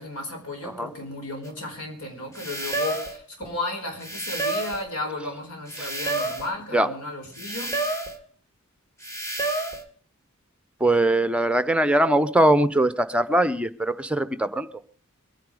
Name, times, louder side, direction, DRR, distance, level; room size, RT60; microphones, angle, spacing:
voice 1, 0.0-7.7, left 2 dB, 75° left, 3 dB, 4.6 m, -34 dB
sound 1, 1.4-1.5 2.4-3.2 4.0-4.9 5.7-6.5 7.4-8.2 9.0-9.8, right 2 dB, 15° left, 1.9 m, -29 dB
voice 2, 10.8-14.7, right 1 dB, 5° right, 12 dB, 0.7 m, -21 dB
23.5 x 10.5 x 4.9 m, 0.43 s
head